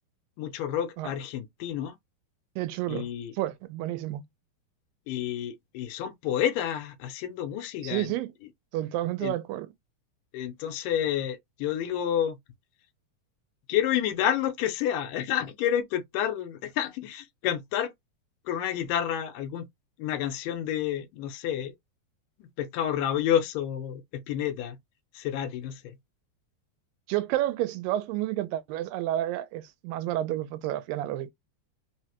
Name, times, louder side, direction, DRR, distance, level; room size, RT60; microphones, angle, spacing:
voice 1, 0.4-1.9 2.9-3.3 5.1-8.1 9.2-9.3 10.3-12.4 13.7-17.9 18.5-19.7 20.0-21.7 22.6-24.8 25.1-26.0, left 10 dB, 80° left, 2.3 m, -29 dB
voice 2, 2.6-3.1 3.3-4.2 7.8-8.3 8.7-9.7 27.1-31.3, right 14 dB, 90° right, 2.3 m, -30 dB
5.4 x 2.1 x 2.9 m
omnidirectional pair, 3.9 m